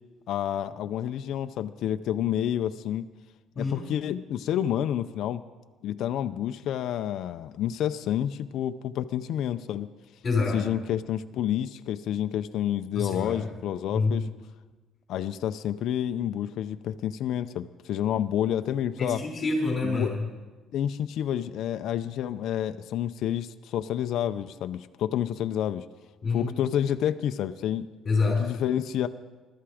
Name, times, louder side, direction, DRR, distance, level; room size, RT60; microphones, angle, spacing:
voice 1, 0.3-3.1 3.6-5.4 5.8-9.9 10.5-14.3 15.1-19.2 19.8-20.1 20.7-25.8 26.3-27.9 28.4-29.1, left 10 dB, 55° left, 8 dB, 0.5 m, -29 dB
voice 2, 10.2-10.6 12.9-13.5 13.9-14.2 19.0-20.2 26.2-26.5 28.0-28.5, left 3 dB, 25° left, 0 dB, 4.6 m, -26 dB
20.5 x 12.5 x 5.0 m, 1.3 s
cardioid pair, 170°, 0 cm